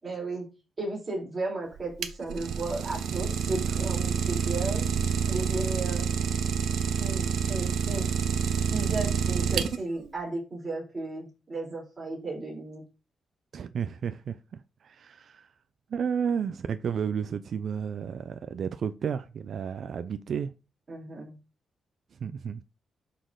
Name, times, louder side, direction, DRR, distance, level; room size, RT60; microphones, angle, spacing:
voice 1, 0.0-0.5 0.8-4.9 5.3-6.1 7.0-8.1 8.7-12.8 20.9-21.4, right 2 dB, 25° right, 4.5 m, -34 dB
Idling, 1.7-10.1, right 6 dB, 85° right, 0.9 m, -28 dB
voice 2, 13.5-15.5 15.9-20.5 22.2-22.6, right 7 dB, 55° right, 0.4 m, -32 dB
11.0 x 4.2 x 3.9 m
wide cardioid pair, 155°, 0 cm